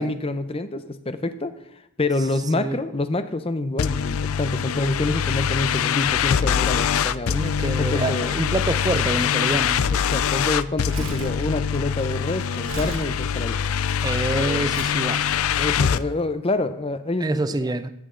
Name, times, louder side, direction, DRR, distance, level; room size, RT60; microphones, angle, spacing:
voice 1, 0.0-1.5 2.0-7.4 7.8-8.3 9.9-13.6 14.3-14.7 15.6-17.4, left 2 dB, 25° left, 0.7 m, -27 dB
sound 1, 3.8-16.0, left 8 dB, 80° left, 0.4 m, -24 dB
voice 2, 7.3-9.8 14.0-15.2 17.2-17.9, right 2 dB, 20° right, 0.5 m, -26 dB
Crumpling crinkling, 10.7-14.0 14.7-15.0 15.8-15.9, right 1 dB, 75° right, 2.3 m, -35 dB
15.0 x 9.8 x 3.8 m
head